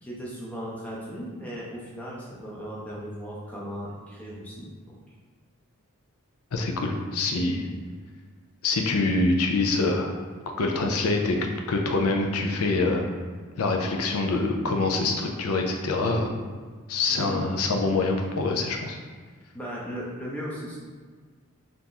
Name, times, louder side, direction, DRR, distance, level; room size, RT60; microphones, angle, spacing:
voice 1, 0.0-4.9 7.6-7.9 17.1-17.5 19.5-20.8, equal, 5° left, -6 dB, 0.6 m, -37 dB
voice 2, 6.5-7.7 8.6-10.1 10.6-11.4 11.7-13.1 13.6-16.3 16.9-19.0, left 3 dB, 75° left, 3 dB, 0.5 m, -25 dB
2.9 x 2.5 x 3.7 m, 1.5 s
head